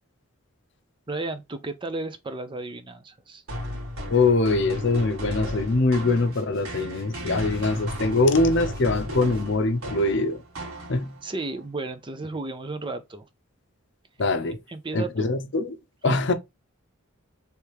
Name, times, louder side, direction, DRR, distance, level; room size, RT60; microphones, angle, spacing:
voice 1, 1.1-3.4 11.2-13.3 14.7-15.3 16.0-16.2, right 2 dB, 25° right, 0.5 m, -33 dB
sound 1, 3.5-11.3, equal, 85° right, 1.9 m, -35 dB
voice 2, 4.1-10.4 10.9-11.2 14.2-14.6 14.9-15.8 16.0-16.3, left 3 dB, 60° left, 0.6 m, -23 dB
sound 2, 6.3-9.7, right 1 dB, 60° right, 1.7 m, -49 dB
3.4 x 3.2 x 4.6 m
head